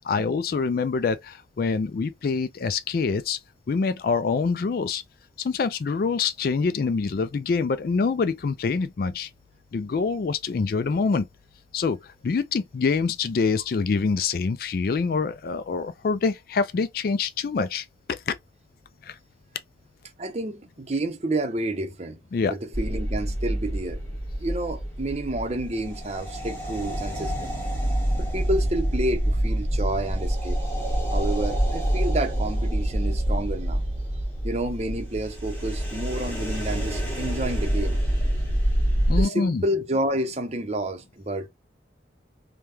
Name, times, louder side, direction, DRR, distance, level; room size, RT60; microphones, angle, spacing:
voice 1, 0.0-3.4 3.7-5.0 5.4-9.3 9.7-11.3 11.7-18.4 19.0-19.1 22.3-22.5 39.1-39.6, left 4 dB, 55° left, 0.3 m, -25 dB
voice 2, 20.2-22.2 22.5-24.0 24.4-27.5 28.2-30.6 31.1-33.8 34.4-38.0 39.1-41.5, right 1 dB, 35° right, 0.7 m, -29 dB
sound 1, 22.7-39.2, right 1 dB, 10° left, 1.2 m, -26 dB
3.4 x 2.2 x 2.8 m
head